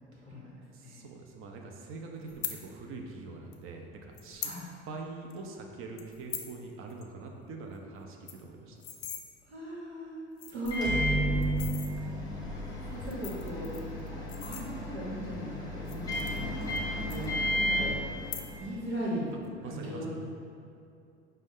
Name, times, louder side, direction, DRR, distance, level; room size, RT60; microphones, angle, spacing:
voice 1, 0.7-4.5 4.9-8.8 11.8-12.0 16.6-16.9 19.6-20.1, right 3 dB, 40° right, 2 dB, 0.6 m, -44 dB
sound 1, 2.3-2.6 3.5-3.6 4.1-4.6 5.0-5.1 5.3-5.5 6.0-6.5 6.9-7.0 7.3-7.4 7.7-7.8 8.1-9.2 9.9-10.0 10.3-10.9 11.4-11.9 12.9-15.1 15.7-16.8 17.1-17.7 18.2-18.8 19.0-19.5, left 9 dB, 40° left, 0.4 m, -41 dB
voice 2, 9.5-10.2 10.5-11.4 12.8-13.7 14.1-16.6 17.1-17.3 17.7-17.9 18.6-19.2 19.7-20.1, equal, 85° right, -6 dB, 1.0 m, -37 dB
Microwave oven, 10.6-18.8, equal, 10° left, 0.8 m, -33 dB
5.1 x 2.2 x 3.7 m, 2.5 s
figure-of-eight pair, 65°, 32 cm